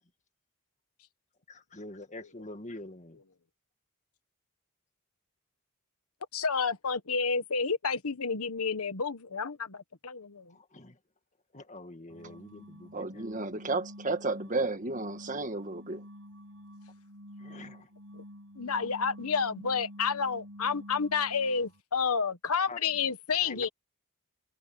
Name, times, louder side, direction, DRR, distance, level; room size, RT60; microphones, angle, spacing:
voice 1, 1.5-3.2 10.5-11.0 11.5-13.2 17.4-17.9 22.7-23.1 23.4-23.7, left 2 dB, 35° left, 1.9 m, -46 dB
voice 2, 6.3-10.5 18.6-23.7, left 5 dB, 90° left, 1.2 m, -30 dB
sound 1, 12.1-21.8, equal, 85° right, 1.5 m, -48 dB
voice 3, 12.9-16.0, right 3 dB, 35° right, 1.6 m, -32 dB
head